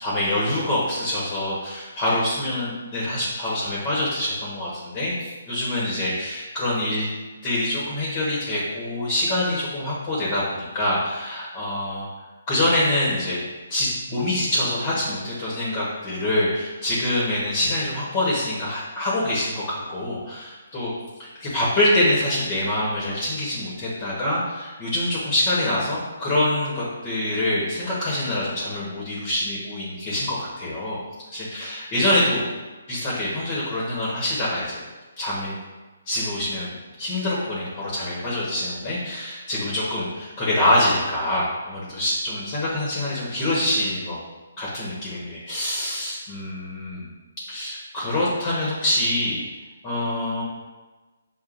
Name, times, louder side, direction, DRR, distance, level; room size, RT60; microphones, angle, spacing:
voice 1, 0.0-7.1 7.4-12.1 12.5-13.4 13.7-20.9 21.2-31.0 31.3-32.4 32.9-34.8 35.2-35.6 36.1-44.2 44.6-47.1 47.5-49.4 49.8-50.4, left 1 dB, 25° left, -7 dB, 1.2 m, -25 dB
6.7 x 2.4 x 2.6 m, 1.2 s
hypercardioid pair, 155°, 0 cm